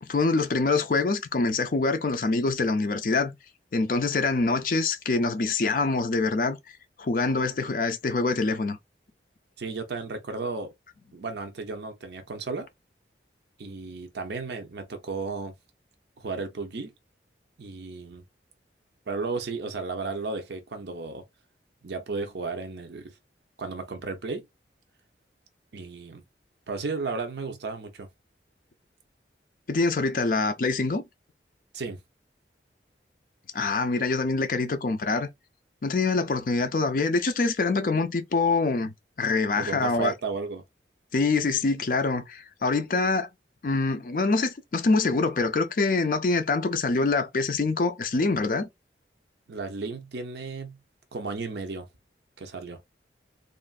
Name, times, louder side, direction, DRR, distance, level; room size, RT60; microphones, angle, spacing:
voice 1, 0.0-3.3 3.7-6.6 7.0-8.8 29.7-31.0 33.5-35.3 35.8-40.1 41.1-43.3 43.6-48.7, left 3 dB, 50° left, 0.4 m, -25 dB
voice 2, 9.6-10.7 11.1-12.7 13.6-15.5 16.2-16.9 17.6-18.2 19.1-21.2 21.8-23.1 23.6-24.5 25.7-26.2 26.7-28.1 31.7-32.0 39.6-40.6 49.5-50.8 51.1-51.9 52.4-52.8, right 4 dB, 70° right, 0.6 m, -34 dB
3.1 x 2.4 x 2.4 m
head